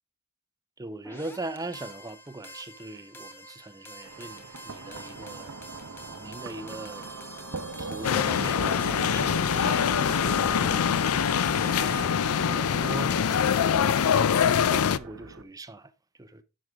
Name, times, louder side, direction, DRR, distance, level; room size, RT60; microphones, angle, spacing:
voice 1, 0.8-5.5 6.1-7.0 7.8-10.8 11.6-12.0 12.4-14.0 14.6-16.4, right 2 dB, 15° right, 0.7 m, -40 dB
sound 1, 1.0-12.1, equal, 10° left, 1.3 m, -45 dB
sound 2, 4.0-15.4, right 3 dB, 70° right, 1.0 m, -39 dB
sound 3, 8.0-15.0, left 8 dB, 75° left, 0.4 m, -24 dB
10.5 x 6.4 x 3.6 m
head